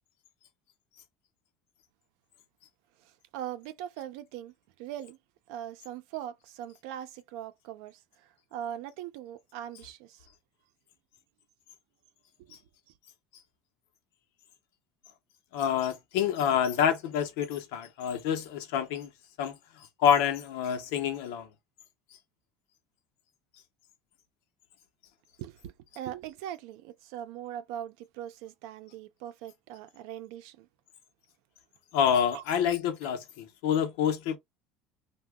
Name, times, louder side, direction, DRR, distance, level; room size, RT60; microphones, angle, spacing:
voice 1, 3.0-4.5 4.8-5.2 5.5-10.3 12.4-12.6 25.4-30.7 32.3-32.4, right 11 dB, 75° right, 0.6 m, -41 dB
voice 2, 15.5-19.1 19.4-21.5 31.9-34.4, left 8 dB, 85° left, 0.7 m, -27 dB
2.9 x 2.2 x 3.5 m
cardioid pair, 160°, 0 cm